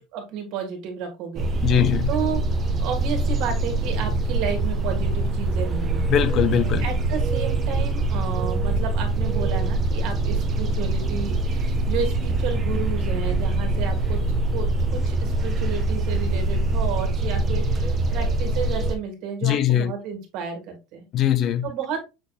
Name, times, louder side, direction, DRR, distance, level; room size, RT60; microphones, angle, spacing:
voice 1, 0.0-1.8 2.1-6.0 6.8-14.2 14.5-21.0 21.6-22.0, right 7 dB, 55° right, 1.8 m, -32 dB
sound 1, 1.4-19.0, right 2 dB, 25° right, 0.7 m, -24 dB
voice 2, 1.6-2.1 6.1-6.9 19.4-19.9 21.1-21.7, left 10 dB, 35° left, 0.4 m, -21 dB
6.2 x 3.6 x 2.3 m
cardioid pair, 160°, 0 cm